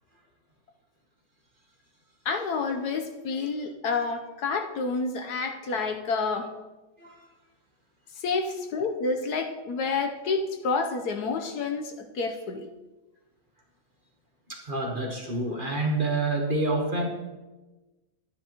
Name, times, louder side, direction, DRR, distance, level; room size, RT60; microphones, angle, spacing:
voice 1, 2.2-6.5 8.2-12.7, left 4 dB, 70° left, 5 dB, 1.3 m, -29 dB
voice 2, 14.5-17.1, right 2 dB, 35° right, 1 dB, 1.1 m, -28 dB
12.5 x 9.7 x 3.0 m, 1.1 s
omnidirectional pair, 1.8 m